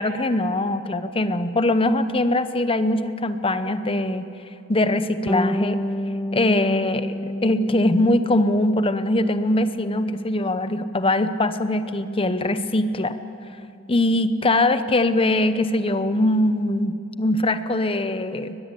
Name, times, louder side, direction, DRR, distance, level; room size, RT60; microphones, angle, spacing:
voice 1, 0.0-4.3 4.7-5.8 6.3-13.2 13.9-18.6, left 1 dB, 25° left, 11 dB, 0.9 m, -22 dB
Bass guitar, 5.3-14.9, left 1 dB, 10° left, 0.6 m, -32 dB
22.5 x 20.5 x 8.5 m, 2.7 s
head